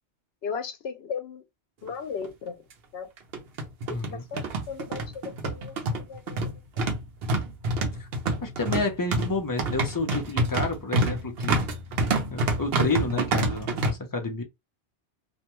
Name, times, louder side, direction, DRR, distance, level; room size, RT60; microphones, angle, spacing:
voice 1, 0.4-1.4 1.8-2.6 2.9-3.1 4.1-6.4 6.8-6.9, left 6 dB, 75° left, 0.8 m, -36 dB
sound 1, 1.9-2.0 2.2-2.3 3.2-13.9, right 2 dB, 65° right, 0.9 m, -27 dB
voice 2, 3.9-4.2 8.0-8.1 8.4-11.6 12.3-14.4, left 3 dB, 25° left, 0.4 m, -30 dB
2.5 x 2.2 x 2.9 m
omnidirectional pair, 1.1 m